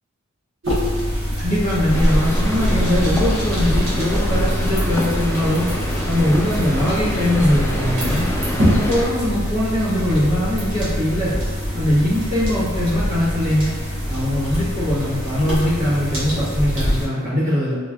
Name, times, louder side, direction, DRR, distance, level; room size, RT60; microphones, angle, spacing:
sound 1, 0.6-17.1, equal, 60° right, 1.3 m, -24 dB
voice 1, 1.3-5.7 6.1-8.2 8.7-11.3 11.7-13.7 14.1-17.7, left 1 dB, 45° right, -14 dB, 1.4 m, -21 dB
sound 2, 1.9-9.1, equal, 10° left, 0.4 m, -24 dB
4.0 x 3.2 x 2.4 m, 1.4 s
head